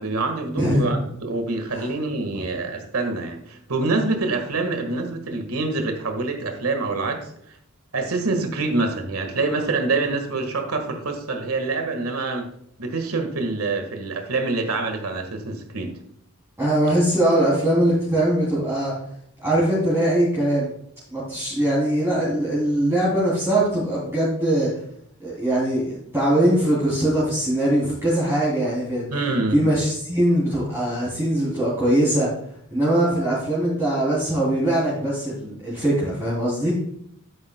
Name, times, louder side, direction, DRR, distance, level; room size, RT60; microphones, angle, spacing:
voice 1, 0.0-7.3 7.9-12.5 12.8-15.9 29.1-29.7, right 3 dB, 85° right, 5 dB, 1.6 m, -26 dB
voice 2, 0.6-1.1 1.7-1.9 16.6-18.9 19.4-20.7 21.1-24.7 25.2-29.1 29.5-32.3 32.7-36.7, right 1 dB, 10° right, -9 dB, 3.0 m, -21 dB
12.0 x 9.0 x 2.2 m, 0.69 s
head